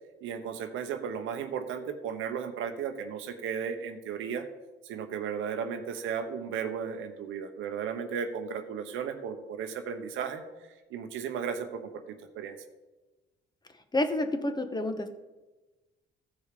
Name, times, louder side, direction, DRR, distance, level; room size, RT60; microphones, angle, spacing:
voice 1, 0.2-4.4 4.9-10.4 10.9-12.5, right 7 dB, 90° right, 6 dB, 1.0 m, -35 dB
voice 2, 13.9-15.1, left 1 dB, 20° left, 8 dB, 1.1 m, -29 dB
14.5 x 5.0 x 5.1 m, 1.2 s
cardioid pair, 90°, 20 cm